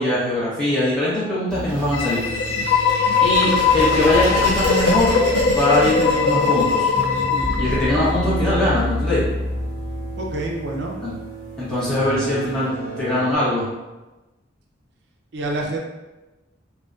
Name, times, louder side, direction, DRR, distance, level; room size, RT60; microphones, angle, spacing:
voice 1, 0.0-2.2 3.2-5.1 5.5-6.9 7.6-9.2 11.0-11.1 11.6-13.7, left 1 dB, 5° left, -10 dB, 0.7 m, -21 dB
sound 1, 1.5-13.4, equal, 50° left, 0.9 m, -29 dB
sound 2, 1.7-8.2, equal, 25° right, 0.9 m, -32 dB
sound 3, 1.9-8.7, left 5 dB, 80° left, 0.3 m, -20 dB
voice 2, 10.2-11.0 15.3-15.8, right 1 dB, 60° right, 0 dB, 0.4 m, -27 dB
2.6 x 2.0 x 2.3 m, 1.1 s
head